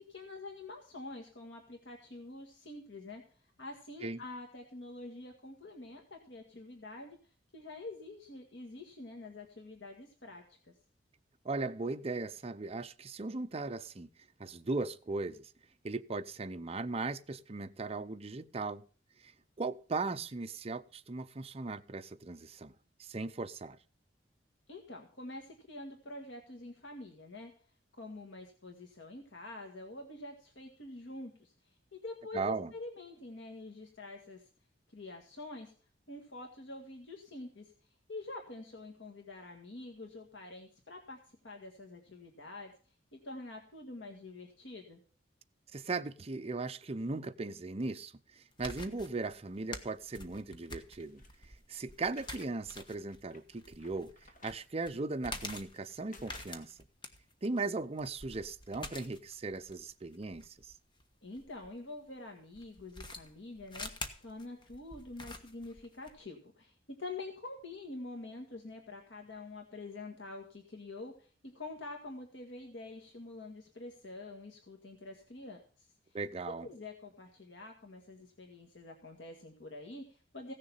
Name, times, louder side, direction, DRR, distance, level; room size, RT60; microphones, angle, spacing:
voice 1, 0.0-7.2 7.5-10.7 24.7-27.5 27.9-34.5 34.9-35.7 36.1-37.7 38.1-42.7 43.1-45.0 61.2-63.9 64.2-75.9 76.6-80.5, left 2 dB, 75° left, 1.8 m, -46 dB
voice 2, 11.4-14.1 14.4-15.5 15.8-18.8 19.2-19.3 19.6-22.7 23.0-23.8 32.3-32.7 45.7-51.2 51.7-54.1 54.4-56.8 57.4-60.7 76.1-76.7, right 3 dB, 35° right, 0.6 m, -38 dB
sound 1, 48.5-61.7 62.5-66.2, left 2 dB, 25° left, 1.2 m, -47 dB
sound 2, 51.0-52.5 52.9-54.7 55.3-56.7, left 3 dB, 45° left, 1.8 m, -58 dB
16.0 x 6.8 x 5.6 m
head